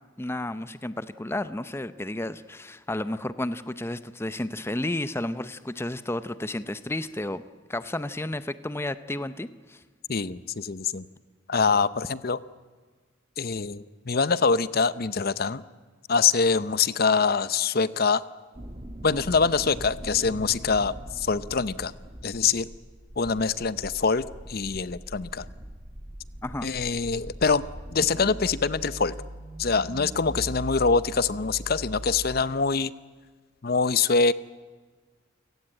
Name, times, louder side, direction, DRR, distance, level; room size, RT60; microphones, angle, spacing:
voice 1, 0.2-7.4 7.7-9.8 26.4-26.7, left 1 dB, 15° left, 13 dB, 0.7 m, -32 dB
voice 2, 10.1-11.0 11.5-12.4 13.4-15.6 16.1-18.2 19.0-21.9 22.2-22.7 23.2-25.5 26.6-27.6 27.9-29.2 29.6-32.9 33.6-34.3, left 5 dB, 50° left, 16 dB, 0.7 m, -24 dB
sound 1, 18.5-32.4, right 1 dB, 30° right, 1.4 m, -41 dB
29.5 x 17.5 x 9.0 m, 1.4 s
head